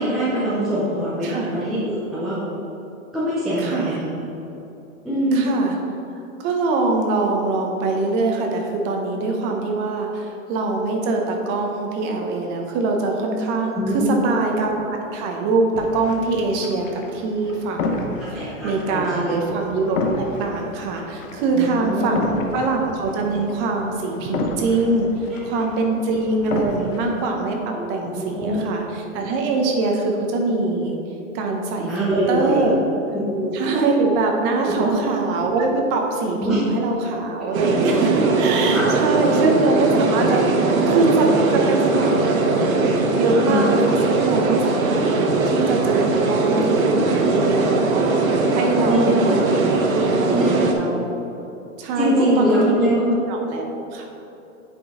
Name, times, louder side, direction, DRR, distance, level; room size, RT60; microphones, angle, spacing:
voice 1, 0.0-2.4 3.1-4.1 5.0-5.5 13.7-14.5 18.3-19.4 21.5-22.3 25.3-25.4 27.7-28.9 31.7-32.6 33.1-33.5 34.6-35.0 36.4-36.6 38.7-39.3 43.3-43.7 48.8-49.5 50.3-50.6 52.0-53.0, equal, ahead, -11 dB, 0.4 m, -23 dB
voice 2, 3.6-4.0 5.3-5.8 6.4-18.0 18.3-25.1 25.4-27.6 27.9-31.0 31.3-32.8 33.5-40.4 40.9-42.4 43.1-45.1 45.5-51.1 51.8-54.0, right 3 dB, 25° right, 2 dB, 0.8 m, -23 dB
sound 1, 15.7-27.3, left 2 dB, 65° left, 1.1 m, -31 dB
sound 2, 37.5-50.7, right 3 dB, 80° right, 1.2 m, -20 dB
8.9 x 5.3 x 3.6 m, 3.0 s
hypercardioid pair, 150°, 41 cm